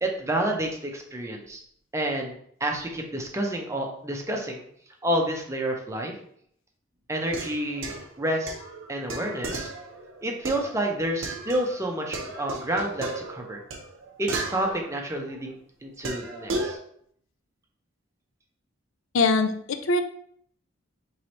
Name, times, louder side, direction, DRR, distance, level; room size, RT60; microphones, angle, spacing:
voice 1, 0.0-1.6 1.9-4.6 5.0-6.1 7.1-8.5 8.9-9.7 10.2-13.6 14.2-16.8, right 1 dB, 15° right, 1 dB, 0.6 m, -29 dB
sound 1, 7.2-11.8 12.1-15.4 16.0-16.8, right 2 dB, 80° right, 0.7 m, -35 dB
voice 2, 19.1-20.0, left 3 dB, 85° left, 8 dB, 0.4 m, -22 dB
4.6 x 3.1 x 2.9 m, 0.64 s
head